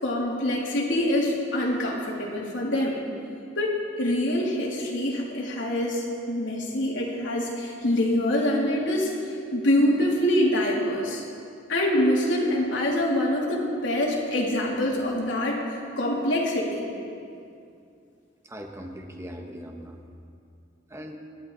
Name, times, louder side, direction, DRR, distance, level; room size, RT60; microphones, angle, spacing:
voice 1, 0.0-3.0 3.6-9.1 9.5-11.2 11.7-15.6 16.0-16.8, left 1 dB, 85° left, -3 dB, 3.2 m, -25 dB
voice 2, 18.4-20.0 20.9-21.2, equal, 15° right, 2 dB, 1.4 m, -40 dB
26.5 x 11.5 x 4.1 m, 2.5 s
head